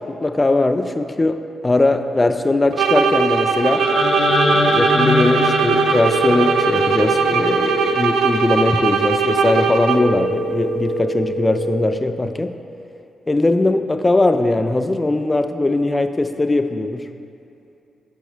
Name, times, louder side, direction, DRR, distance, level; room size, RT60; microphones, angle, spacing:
voice 1, 0.1-3.9 4.5-12.5 13.3-17.1, left 2 dB, 25° left, 8 dB, 0.4 m, -20 dB
sound 1, 2.7-10.3, right 5 dB, 75° right, 0.3 m, -19 dB
sound 2, 3.7-7.7, left 3 dB, 50° left, 0.9 m, -23 dB
sound 3, 5.9-8.0 9.9-12.0, right 1 dB, 30° right, 0.6 m, -25 dB
7.6 x 4.3 x 3.4 m, 2.7 s
hypercardioid pair, 40°, 0 cm